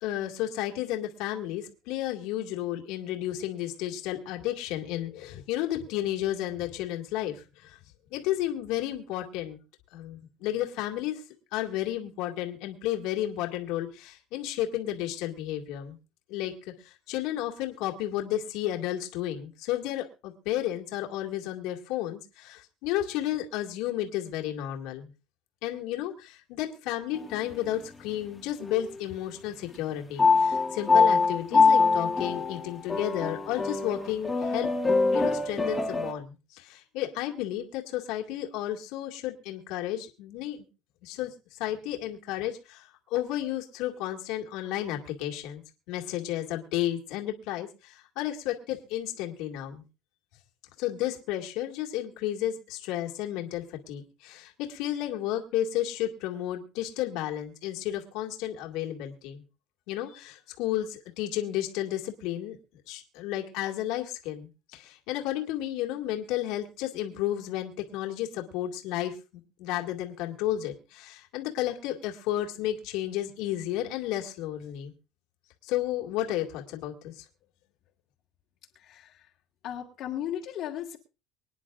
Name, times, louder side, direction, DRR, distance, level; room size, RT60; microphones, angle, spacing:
voice 1, 0.0-7.8 8.1-9.6 9.9-11.2 11.5-16.0 16.3-16.5 16.8-25.1 25.6-34.7 35.1-40.7 41.0-45.6 45.9-49.8 50.8-59.4 59.9-62.6 62.9-69.2 69.6-74.9 75.6-77.2, left 13 dB, 75° left, 1 dB, 2.1 m, -32 dB
sound 1, 27.1-27.9 28.6-29.2 30.2-36.1, left 4 dB, 15° left, 1.7 m, -24 dB
voice 2, 78.8-79.3 79.6-81.0, left 10 dB, 55° left, -3 dB, 1.8 m, -36 dB
25.0 x 10.0 x 2.5 m, 0.30 s
cardioid pair, 140°, 0 cm